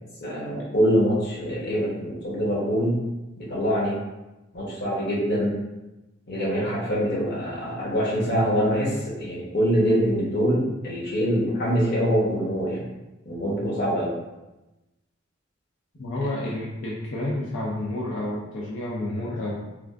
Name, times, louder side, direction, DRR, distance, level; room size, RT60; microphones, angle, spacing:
voice 1, 0.2-3.0 3.4-4.0 4.5-5.5 6.3-12.8 13.2-14.1, equal, 55° left, -5 dB, 1.0 m, -24 dB
voice 2, 16.0-19.6, left 1 dB, 80° left, -5 dB, 0.5 m, -30 dB
3.3 x 2.4 x 2.4 m, 1.0 s
head